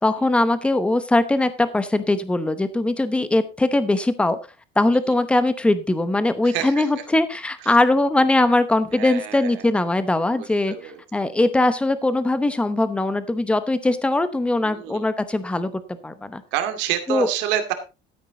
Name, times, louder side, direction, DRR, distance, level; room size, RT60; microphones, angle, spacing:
voice 1, 0.0-4.4 4.8-15.7 16.0-16.4 17.1-17.3, left 2 dB, 5° left, 12 dB, 0.9 m, -21 dB
voice 2, 6.4-6.9 7.6-7.7 8.9-9.6 10.4-11.0 14.6-15.0 16.5-17.7, right 11 dB, 80° right, 7 dB, 2.4 m, -28 dB
13.5 x 8.9 x 3.9 m, 0.29 s
cardioid pair, 170°, 19 cm